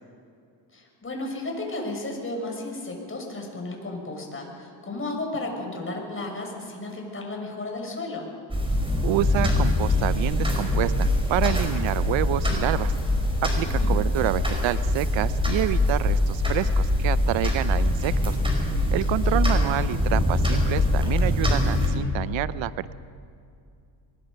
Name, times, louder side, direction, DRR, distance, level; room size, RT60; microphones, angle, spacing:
voice 1, 0.7-8.3 13.6-14.1 19.1-19.7, left 2 dB, 25° left, 1 dB, 6.4 m, -34 dB
sound 1, 8.5-21.9, left 1 dB, 10° right, 5.8 m, -23 dB
voice 2, 9.0-12.9 13.4-18.4 18.9-22.9, right 14 dB, 65° right, 16 dB, 0.8 m, -28 dB
24.0 x 21.0 x 5.3 m, 2.5 s
supercardioid pair, 90°, 49 cm